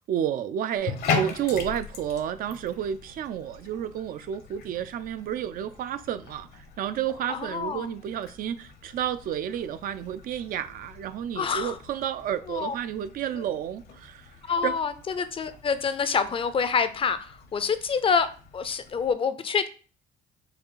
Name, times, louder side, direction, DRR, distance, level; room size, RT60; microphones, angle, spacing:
voice 1, 0.0-14.3 14.6-14.7, right 10 dB, 55° right, 0.4 m, -31 dB
Bathtub (filling or washing), 0.8-19.1, left 5 dB, 70° left, 0.9 m, -39 dB
voice 2, 7.3-7.9 11.3-11.8 12.5-12.7 13.3-13.4 14.4-19.7, left 6 dB, 30° left, 0.5 m, -27 dB
4.8 x 2.3 x 4.6 m
cardioid pair, 110°, 17 cm